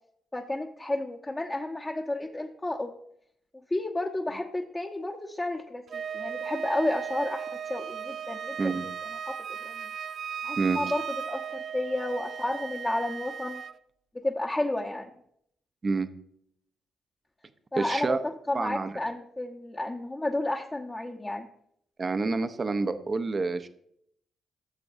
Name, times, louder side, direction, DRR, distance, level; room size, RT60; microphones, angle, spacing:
voice 1, 0.3-2.9 3.7-7.4 7.7-8.5 9.3-9.4 9.6-9.9 10.4-13.6 14.1-15.1 17.7-21.5, left 1 dB, 25° left, -2 dB, 1.0 m, -31 dB
Wind instrument woodwind instrument, 5.9-13.8, right 8 dB, 60° right, 0.3 m, -36 dB
voice 2, 17.8-18.2 18.5-18.9 22.0-23.7, right 3 dB, 40° right, 10 dB, 0.8 m, -28 dB
15.0 x 6.9 x 2.7 m, 0.69 s
hypercardioid pair, 45°, 0 cm